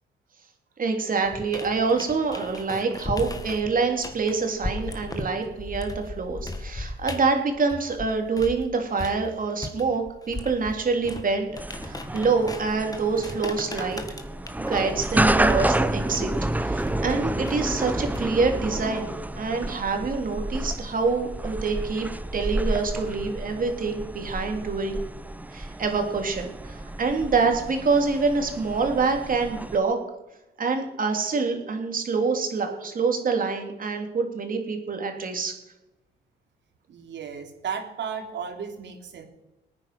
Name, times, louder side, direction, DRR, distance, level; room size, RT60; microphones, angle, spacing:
voice 1, 0.8-11.5 11.8-14.0 14.6-16.3 16.6-22.1 22.3-25.0 25.5-30.0 30.6-35.5, right 4 dB, 45° right, 4 dB, 3.2 m, -26 dB
sound 1, 1.3-8.6 9.0-18.6, left 2 dB, 20° left, 1.9 m, -37 dB
sound 2, 11.6-29.8, right 1 dB, 10° right, 0.8 m, -30 dB
voice 2, 36.9-39.2, right 6 dB, 65° right, 4 dB, 3.1 m, -34 dB
21.0 x 9.6 x 6.1 m, 0.98 s
cardioid pair, 90°, 20 cm